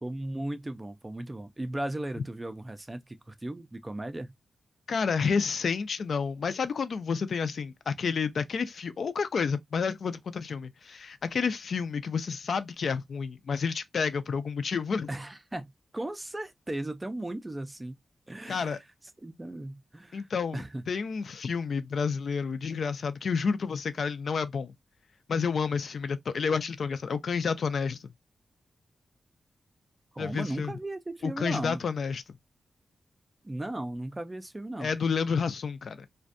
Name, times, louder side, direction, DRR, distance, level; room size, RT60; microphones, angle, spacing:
voice 1, 0.0-4.3 15.1-17.9 18.3-18.8 19.2-20.8 30.1-31.8 33.4-34.9, right 1 dB, 20° right, 0.3 m, -36 dB
voice 2, 4.9-15.1 18.5-18.8 20.1-24.7 25.3-28.1 30.2-30.7 31.2-32.2 34.8-36.1, left 5 dB, 65° left, 0.3 m, -30 dB
2.5 x 2.1 x 2.4 m
wide cardioid pair, 130°, 0 cm